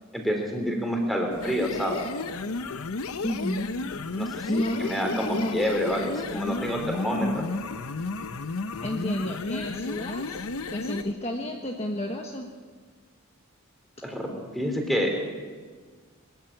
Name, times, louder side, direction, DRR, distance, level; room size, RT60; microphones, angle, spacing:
voice 1, 0.1-2.1 4.2-7.3 14.0-15.1, equal, ahead, 2 dB, 3.5 m, -28 dB
sound 1, 1.3-11.1, left 3 dB, 80° left, 0.8 m, -33 dB
voice 2, 3.2-3.7 4.5-5.5 7.1-7.4 8.8-10.4 10.7-12.4, left 1 dB, 30° left, 2 dB, 1.3 m, -31 dB
21.5 x 14.0 x 8.8 m, 1.6 s
head